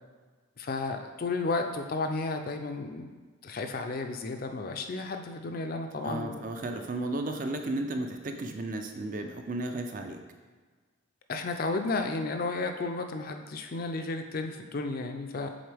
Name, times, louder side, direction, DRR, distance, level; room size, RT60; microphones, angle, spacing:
voice 1, 0.6-3.2 3.4-6.5 11.3-15.5, left 3 dB, 45° left, 6 dB, 0.4 m, -33 dB
voice 2, 6.0-10.2, right 2 dB, 40° right, 5 dB, 0.4 m, -34 dB
7.8 x 3.8 x 3.4 m, 1.4 s
head